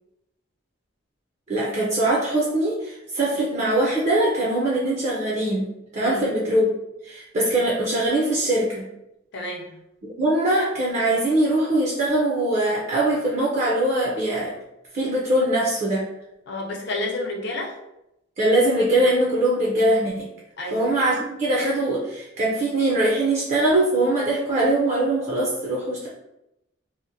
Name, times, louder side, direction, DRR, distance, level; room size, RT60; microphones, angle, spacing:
voice 1, 1.5-5.7 5.9-6.7 7.0-8.8 10.2-14.5 14.9-16.1 18.4-20.3 20.7-26.1, right 1 dB, 35° right, -4 dB, 0.4 m, -22 dB
voice 2, 9.3-9.7 16.5-17.8 20.6-20.8, left 2 dB, 60° left, 0 dB, 0.5 m, -30 dB
2.8 x 2.1 x 2.5 m, 0.86 s
head